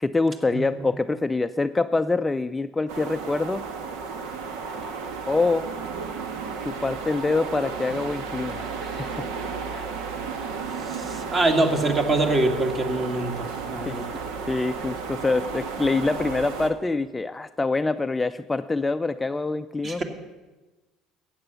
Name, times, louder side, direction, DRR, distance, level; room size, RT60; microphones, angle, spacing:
voice 1, 0.0-3.6 5.3-5.7 6.6-9.3 9.7-9.9 13.9-14.0 14.5-20.0, left 3 dB, 15° left, 9 dB, 0.4 m, -25 dB
sound 1, 2.9-16.7, right 5 dB, 85° right, 1.3 m, -33 dB
voice 2, 10.9-14.0 19.8-20.0, right 2 dB, 35° right, 5 dB, 2.1 m, -24 dB
14.5 x 8.8 x 6.9 m, 1.2 s
supercardioid pair, 105°, 0 cm